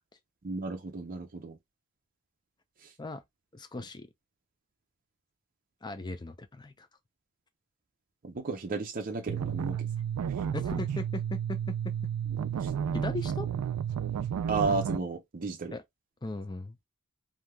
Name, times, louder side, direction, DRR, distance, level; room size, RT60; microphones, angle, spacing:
voice 1, 0.4-1.6 2.8-2.9 8.2-9.9 12.6-12.7 14.5-15.8, right 3 dB, 40° right, 0.6 m, -33 dB
voice 2, 3.5-4.1 5.8-6.9 10.5-12.1 12.9-13.5 15.7-15.8 16.2-16.8, left 2 dB, 20° left, 0.5 m, -38 dB
sound 1, 9.3-15.0, right 8 dB, 85° right, 0.3 m, -32 dB
3.4 x 2.7 x 2.2 m
head